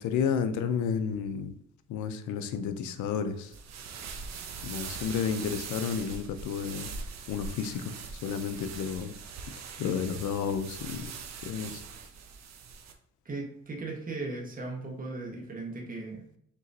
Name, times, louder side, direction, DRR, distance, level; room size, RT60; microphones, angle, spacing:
voice 1, 0.0-1.5 1.9-3.5 4.6-6.9 7.3-9.1 9.8-11.1 11.4-11.8, left 7 dB, 75° left, 9 dB, 0.6 m, -31 dB
sound 1, 3.4-12.9, right 5 dB, 60° right, 0.7 m, -42 dB
voice 2, 13.2-16.2, right 3 dB, 30° right, 0 dB, 1.2 m, -37 dB
5.4 x 3.0 x 2.7 m, 0.70 s
cardioid pair, 90°, 30 cm